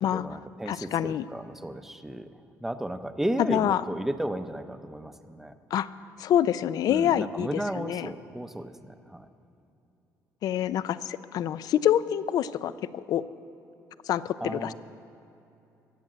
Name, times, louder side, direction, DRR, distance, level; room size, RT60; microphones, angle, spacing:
voice 1, 0.0-2.3 2.6-5.5 6.9-9.3 14.4-14.7, right 1 dB, 5° right, 10 dB, 0.6 m, -34 dB
voice 2, 0.7-1.3 3.5-3.8 5.7-5.9 6.2-8.1 10.4-13.2 14.1-14.7, left 10 dB, 65° left, 16 dB, 0.4 m, -26 dB
15.5 x 9.0 x 7.6 m, 2.8 s
cardioid pair, 115°, 7 cm